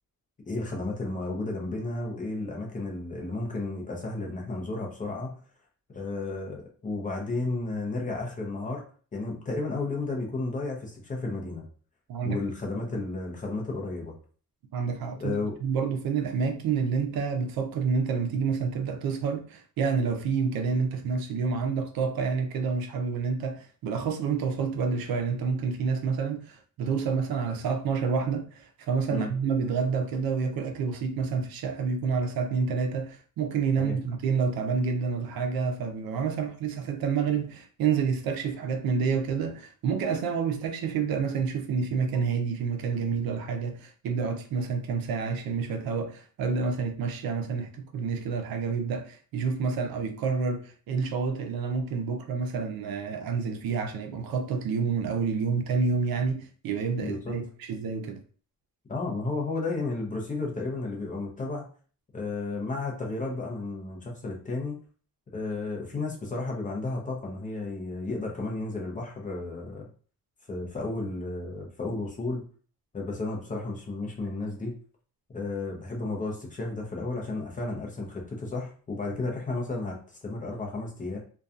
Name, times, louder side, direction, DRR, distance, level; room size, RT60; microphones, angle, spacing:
voice 1, 0.5-5.4 5.9-8.8 9.1-11.6 12.2-14.1 15.2-15.5 29.1-29.3 33.8-34.0 57.0-57.3 58.9-61.7 62.1-64.8 65.3-69.9 70.5-72.4 72.9-74.7 75.3-81.2, left 3 dB, 20° left, 0.5 m, -33 dB
voice 2, 14.7-58.2, right 5 dB, 75° right, 0.6 m, -28 dB
2.6 x 2.3 x 2.3 m
cardioid pair, 155°, 36 cm